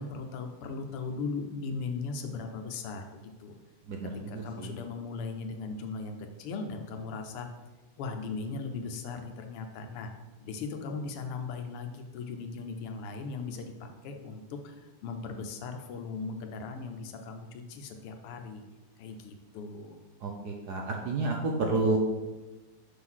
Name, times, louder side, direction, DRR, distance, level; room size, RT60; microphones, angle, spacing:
voice 1, 0.0-3.5 4.3-7.5 8.0-10.1 10.4-18.6 19.0-20.0, left 4 dB, 90° left, 5 dB, 1.7 m, -38 dB
voice 2, 20.2-22.0, right 2 dB, 65° right, 1 dB, 1.0 m, -29 dB
6.3 x 3.8 x 6.2 m, 1.1 s
omnidirectional pair, 2.4 m